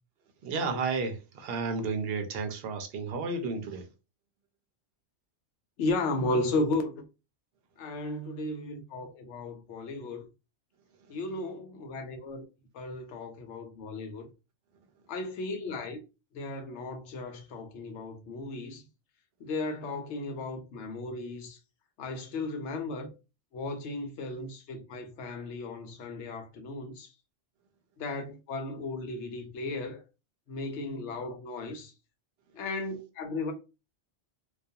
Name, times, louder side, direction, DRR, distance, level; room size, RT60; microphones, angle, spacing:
voice 1, 0.4-3.9, right 4 dB, 65° right, 0.7 m, -32 dB
voice 2, 5.8-7.1 7.8-10.3 11.1-12.5 12.7-14.3 15.1-16.0 16.3-18.8 19.4-21.6 22.0-23.1 23.5-27.1 28.0-30.0 30.5-31.9 32.5-33.5, left 2 dB, 85° left, 0.9 m, -35 dB
2.3 x 2.3 x 2.6 m
omnidirectional pair, 1.1 m